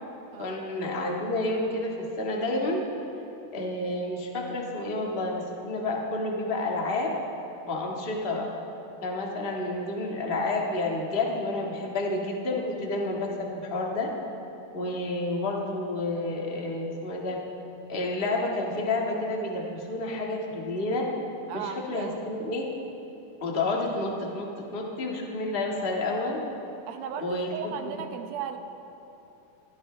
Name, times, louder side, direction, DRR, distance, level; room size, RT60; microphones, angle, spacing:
voice 1, 0.4-2.8 3.5-7.1 7.6-8.5 9.0-13.3 13.5-14.1 14.7-17.4 17.9-21.0 21.5-22.6 23.4-24.4 24.7-26.4 27.2-28.0, left 2 dB, 35° left, -1 dB, 0.8 m, -30 dB
voice 2, 21.5-22.2 26.8-28.6, right 8 dB, 80° right, 6 dB, 2.7 m, -36 dB
24.0 x 16.5 x 3.4 m, 2.9 s
omnidirectional pair, 4.2 m